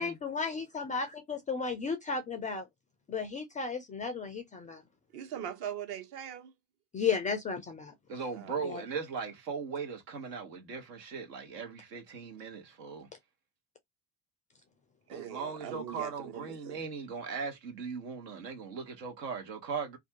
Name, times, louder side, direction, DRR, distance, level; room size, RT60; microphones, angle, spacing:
voice 1, 0.0-2.7 3.1-4.8 6.9-7.9 8.6-8.8, left 5 dB, 20° left, 0.3 m, -34 dB
voice 2, 5.1-6.5 8.3-8.6 15.1-16.8, right 9 dB, 50° right, 0.8 m, -41 dB
voice 3, 8.1-13.1 15.1-20.0, right 5 dB, 75° right, 0.9 m, -38 dB
2.5 x 2.3 x 2.6 m
figure-of-eight pair, 60°, 49 cm